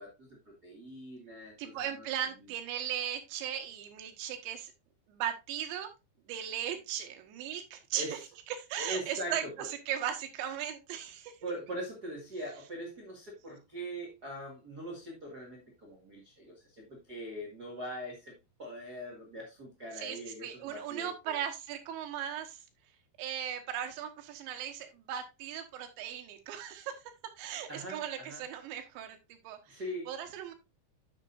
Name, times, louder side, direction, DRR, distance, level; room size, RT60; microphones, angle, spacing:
voice 1, 0.0-2.0 2.4-2.5 7.9-8.2 8.8-9.7 11.4-21.4 27.7-28.4 29.7-30.1, equal, 60° right, -2 dB, 1.0 m, -42 dB
voice 2, 1.6-4.7 5.1-5.9 6.3-8.2 8.5-11.5 20.0-22.6 23.2-29.8 30.1-30.5, right 10 dB, 85° right, 6 dB, 3.5 m, -37 dB
11.0 x 6.4 x 2.6 m, 0.23 s
omnidirectional pair, 5.2 m